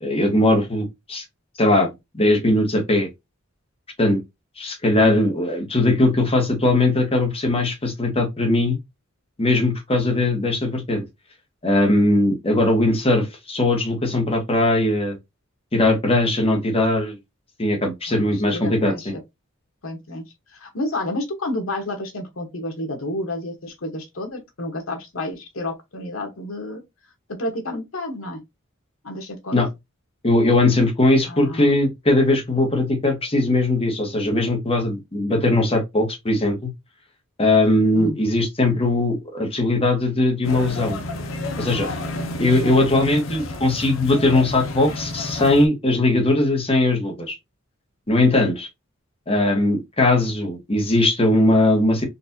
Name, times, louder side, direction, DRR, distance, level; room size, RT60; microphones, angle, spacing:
voice 1, 0.0-1.2 1.6-1.9 2.1-3.1 4.0-4.2 4.6-8.8 9.4-11.0 11.6-15.2 15.7-17.2 17.6-19.1 29.5-29.7 30.2-36.7 37.4-41.0 41.6-41.9 42.4-47.4 48.1-48.7 49.3-52.1, left 2 dB, 30° left, 1.1 m, -19 dB
voice 2, 18.1-19.2 19.8-20.3 20.5-26.8 27.3-28.4 29.0-29.6 31.2-31.8 37.9-38.2, left 1 dB, 85° left, 1.1 m, -30 dB
sound 1, 40.4-45.7, left 2 dB, 70° left, 0.7 m, -30 dB
4.0 x 2.5 x 2.7 m
head